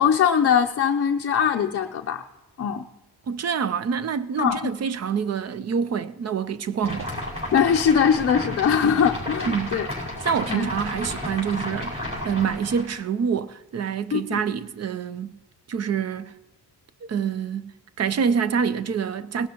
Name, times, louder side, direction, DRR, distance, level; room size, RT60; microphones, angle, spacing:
voice 1, 0.0-2.2 2.6-2.8 4.4-4.7 7.5-9.9 10.5-10.7 14.1-14.4, left 7 dB, 40° left, 0.6 m, -21 dB
voice 2, 3.3-7.1 9.5-9.8 10.2-15.4 15.7-16.3 17.0-17.7 18.0-19.5, right 7 dB, 40° right, 0.6 m, -26 dB
sound 1, 6.8-13.0, left 1 dB, 15° right, 5.1 m, -32 dB
19.5 x 12.5 x 2.9 m
wide cardioid pair, 175°, 39 cm